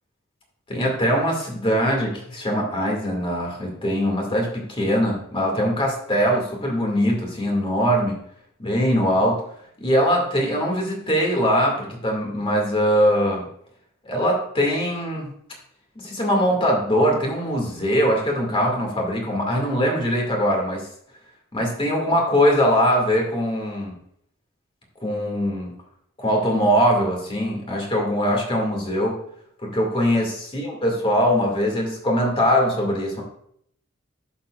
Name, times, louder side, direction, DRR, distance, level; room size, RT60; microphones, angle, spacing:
voice 1, 0.7-8.2 8.6-9.4 9.8-13.5 14.1-15.3 16.0-20.9 21.5-24.0 25.0-25.7 26.2-29.2 29.6-33.2, equal, 25° left, 0 dB, 2.2 m, -22 dB
11.0 x 7.2 x 2.4 m, 0.68 s
head